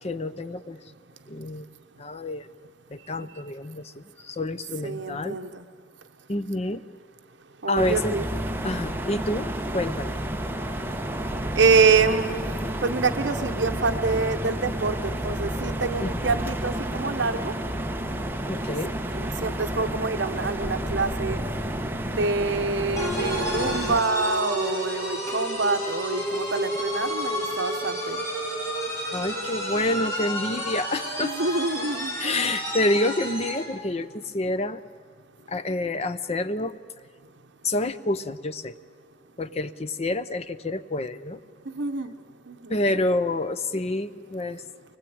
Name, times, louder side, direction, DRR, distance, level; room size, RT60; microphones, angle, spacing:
voice 1, 0.0-0.8 1.3-1.7 2.0-2.5 2.9-5.4 6.3-6.8 7.7-8.1 8.6-10.2 16.0-16.1 18.5-18.9 29.1-31.4 32.2-34.8 35.5-36.7 37.6-38.7 39.4-41.4 42.7-44.6, left 2 dB, 35° left, 12 dB, 0.7 m, -28 dB
voice 2, 4.8-5.6 7.6-8.6 11.6-12.5 12.8-17.6 19.1-21.4 22.1-28.2 31.2-32.5 41.7-42.1 42.5-43.0, right 4 dB, 70° right, 7 dB, 1.0 m, -26 dB
sound 1, 7.8-24.0, right 1 dB, 10° right, 1.0 m, -30 dB
sound 2, 23.0-33.7, equal, 15° left, 5.0 m, -31 dB
24.0 x 19.5 x 8.7 m, 2.1 s
head